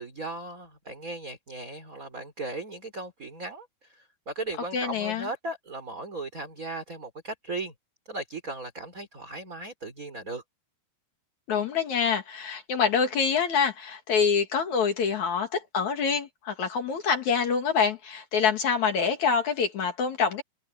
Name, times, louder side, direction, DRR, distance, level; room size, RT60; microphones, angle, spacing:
voice 1, 0.0-7.7 8.1-10.4, right 2 dB, 20° right, 4.1 m, -37 dB
voice 2, 4.7-5.3 11.5-20.4, left 6 dB, 55° left, 2.9 m, -26 dB
omnidirectional pair, 4.7 m